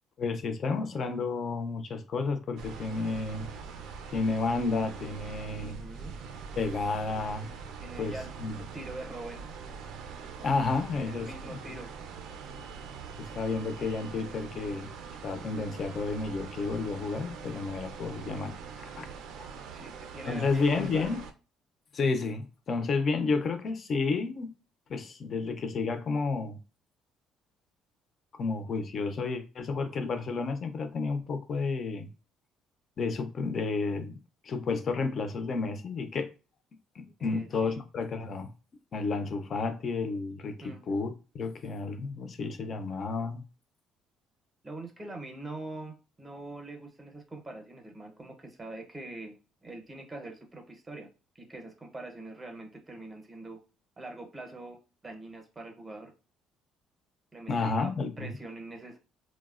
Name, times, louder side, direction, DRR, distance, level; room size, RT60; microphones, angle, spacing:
voice 1, 0.2-3.5 4.1-5.8 6.6-7.5 8.0-8.6 10.4-11.6 13.2-14.9 15.2-19.1 19.4-19.5 20.2-21.2 21.9-24.5 24.9-26.6 28.3-32.1 33.0-34.2 34.4-36.3 37.0-38.5 38.9-43.4 57.5-58.4, left 4 dB, 40° left, 0.4 m, -31 dB
sound 1, 2.6-21.3, right 6 dB, 75° right, 0.4 m, -43 dB
voice 2, 5.6-6.1 7.8-8.3 8.6-9.4 11.0-11.9 19.7-21.1 37.2-37.8 40.6-40.8 44.6-49.3 49.6-51.1 51.4-53.6 54.0-54.8 55.0-56.1 57.3-57.9 58.2-59.0, right 2 dB, 20° right, 0.6 m, -43 dB
3.0 x 2.0 x 2.3 m
cardioid pair, 135°, 0 cm